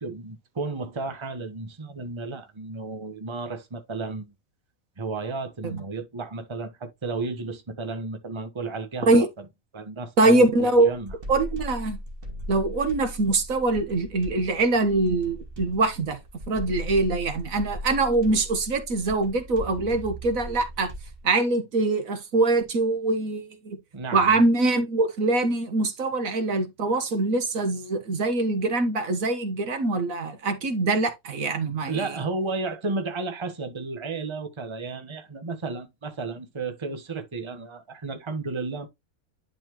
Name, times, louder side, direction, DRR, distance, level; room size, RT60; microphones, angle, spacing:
voice 1, 0.0-4.3 5.0-9.4 9.7-10.4 10.8-11.1 23.9-24.4 31.9-38.9, right 3 dB, 20° right, 1.1 m, -33 dB
voice 2, 10.2-10.9 11.3-12.0 12.5-16.2 16.5-20.9 21.2-23.8 24.1-32.1, right 2 dB, 75° right, 1.7 m, -23 dB
sound 1, 10.6-21.2, equal, 40° right, 2.1 m, -38 dB
11.0 x 4.3 x 3.0 m
omnidirectional pair, 1.4 m